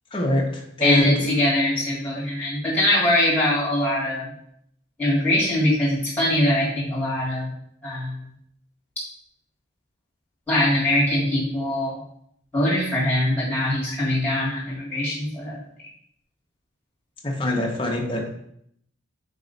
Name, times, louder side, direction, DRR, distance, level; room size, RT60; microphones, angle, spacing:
voice 1, 0.1-1.3 17.2-18.3, left 1 dB, 25° left, 0 dB, 0.7 m, -24 dB
voice 2, 0.8-4.3 5.0-7.5 7.8-8.2 10.5-12.0 12.5-15.6, left 1 dB, 10° left, -8 dB, 1.7 m, -22 dB
4.1 x 3.0 x 3.9 m, 0.70 s
head